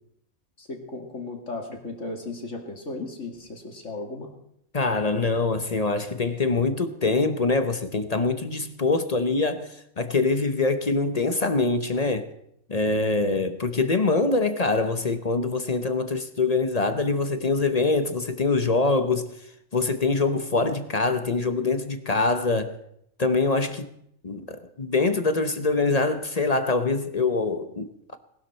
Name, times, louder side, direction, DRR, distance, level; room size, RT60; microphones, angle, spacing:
voice 1, 0.6-4.3 5.1-5.2, left 2 dB, 55° left, 2.4 m, -36 dB
voice 2, 4.7-12.3 12.7-19.3 19.7-22.8 23.2-23.9 24.2-28.2, left 3 dB, 35° left, 0.7 m, -24 dB
19.0 x 12.5 x 4.3 m
omnidirectional pair, 1.5 m